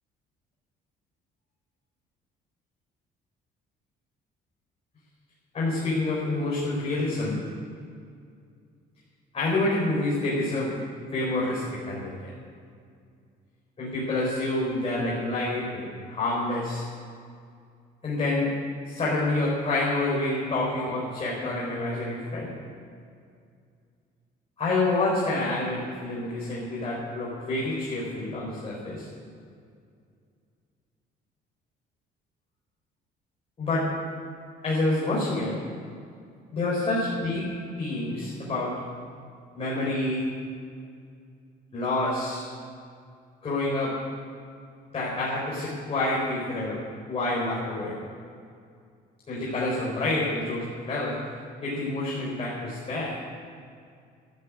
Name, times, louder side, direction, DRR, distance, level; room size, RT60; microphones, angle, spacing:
voice 1, 5.5-7.4 9.3-10.8 11.1-12.3 13.8-16.9 18.0-18.5 18.9-22.5 24.6-29.1 33.6-33.8 34.6-35.5 36.5-37.5 37.8-38.7 39.5-40.2 41.7-42.5 43.4-43.9 44.9-46.8 47.1-47.9 49.3-51.1 51.6-53.1, left 2 dB, 35° left, -6 dB, 4.4 m, -28 dB
12.0 x 10.5 x 9.7 m, 2.3 s
cardioid pair, 110°, 17 cm